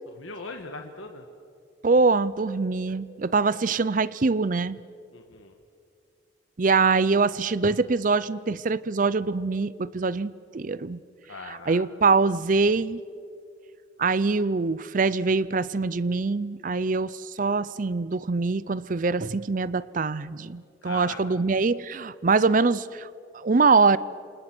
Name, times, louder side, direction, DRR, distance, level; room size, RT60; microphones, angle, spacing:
voice 1, 0.1-1.2 5.1-5.5 11.3-11.8 20.8-21.2, left 3 dB, 90° left, 4 dB, 1.5 m, -39 dB
voice 2, 1.8-4.8 6.6-11.0 11.5-13.0 14.0-23.1 23.3-24.0, right 4 dB, 40° right, 18 dB, 0.5 m, -24 dB
29.0 x 27.0 x 6.1 m, 2.4 s
head